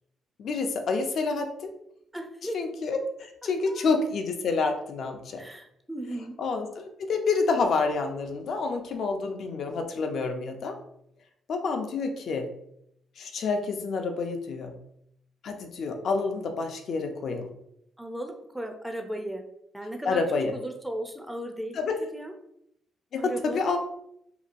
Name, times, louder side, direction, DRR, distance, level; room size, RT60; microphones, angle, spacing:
voice 1, 0.4-1.7 2.5-5.4 6.4-10.8 11.5-12.5 13.2-14.8 15.4-17.5 20.1-20.5 21.7-22.0 23.1-23.8, left 4 dB, 65° left, 5 dB, 0.4 m, -28 dB
voice 2, 2.1-2.6 3.7-3.9 5.4-6.3 18.0-19.4 19.7-20.2 20.5-21.8 22.1-22.3 23.2-23.7, right 1 dB, 5° right, 3 dB, 0.4 m, -36 dB
2.8 x 2.2 x 2.4 m, 0.76 s
cardioid pair, 90°, 0 cm